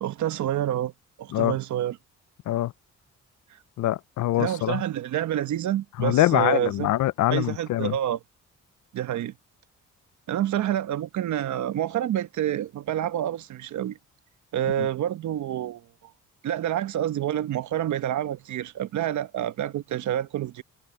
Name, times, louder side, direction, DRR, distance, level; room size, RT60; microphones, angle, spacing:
voice 1, 0.0-0.9 1.2-2.0 4.4-6.9 7.3-8.2 8.9-9.3 10.3-14.0 14.5-15.8 16.4-20.6, right 11 dB, 70° right, 1.3 m, -28 dB
voice 2, 3.8-4.8 6.0-7.9 14.8-14.9, left 15 dB, 75° left, 0.7 m, -24 dB
cardioid pair, 90°, 30 cm